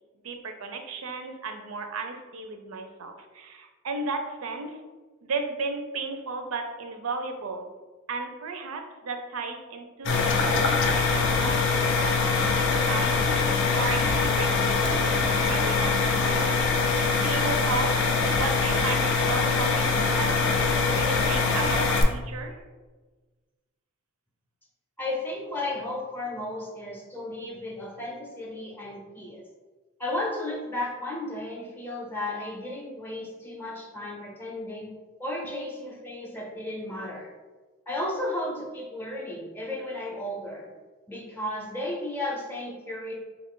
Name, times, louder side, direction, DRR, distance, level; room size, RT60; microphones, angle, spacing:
voice 1, 0.2-4.8 5.2-7.6 8.1-17.0 17.2-18.0 18.3-20.4 20.6-22.6, right 3 dB, 80° right, 5 dB, 0.5 m, -35 dB
sound 1, 10.1-22.0, left 4 dB, 60° left, 0.5 m, -23 dB
voice 2, 25.0-29.5 30.0-34.9 35.2-37.3 37.9-40.7 41.1-43.1, left 1 dB, 10° left, -2 dB, 0.5 m, -34 dB
3.7 x 2.4 x 3.6 m, 1.3 s
head